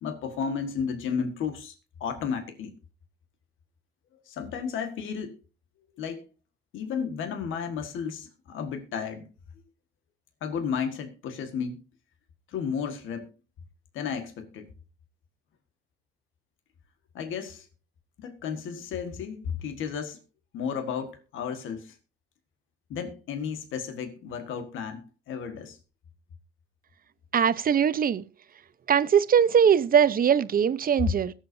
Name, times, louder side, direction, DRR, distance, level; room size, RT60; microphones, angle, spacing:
voice 1, 0.0-1.7 2.0-2.7 4.3-5.4 6.0-6.2 6.7-9.3 10.4-11.8 12.5-13.3 13.9-14.7 17.1-17.7 18.2-20.2 20.5-22.0 22.9-25.8, left 6 dB, 85° left, 1.7 m, -33 dB
voice 2, 27.3-28.2 28.9-31.3, right 8 dB, 45° right, 0.8 m, -21 dB
22.0 x 7.4 x 2.7 m
cardioid pair, 90°, 20 cm